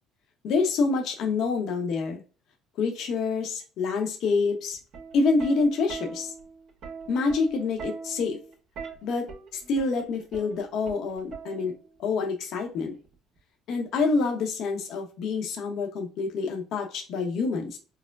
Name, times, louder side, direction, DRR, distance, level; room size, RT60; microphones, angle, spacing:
voice 1, 0.4-2.2 2.8-4.8 5.1-6.3 7.1-8.4 9.0-9.3 9.7-11.7 12.0-12.9 13.7-17.8, left 4 dB, 65° left, 3 dB, 0.9 m, -27 dB
Plucked string instrument, 4.7-12.0 13.0-13.4, right 5 dB, 65° right, 1.2 m, -41 dB
4.7 x 2.1 x 2.3 m, 0.35 s
cardioid pair, 110°, 0 cm